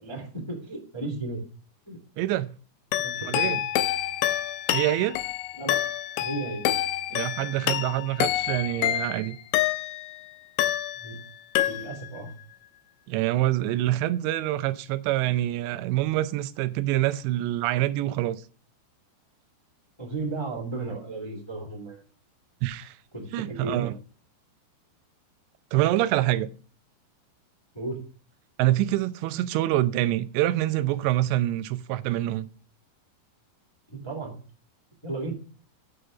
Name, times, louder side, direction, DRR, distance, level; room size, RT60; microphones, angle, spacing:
voice 1, 0.0-1.4 1.9-2.2 3.0-3.6 5.6-5.8 6.2-6.6 11.0-11.1 11.7-12.3 20.0-22.0 23.1-23.9 27.7-28.0 33.9-34.3 35.0-35.3, right 2 dB, 10° left, 1.3 m, -34 dB
voice 2, 2.2-2.6 3.2-3.6 4.7-5.2 7.1-9.4 13.1-18.4 22.6-23.0 23.3-23.9 25.7-26.5 28.6-32.5, right 15 dB, 85° right, 2.8 m, -26 dB
sound 1, 2.9-10.2 10.6-11.3 11.6-12.2, left 13 dB, 80° left, 2.7 m, -27 dB
7.9 x 5.1 x 6.7 m
omnidirectional pair, 5.0 m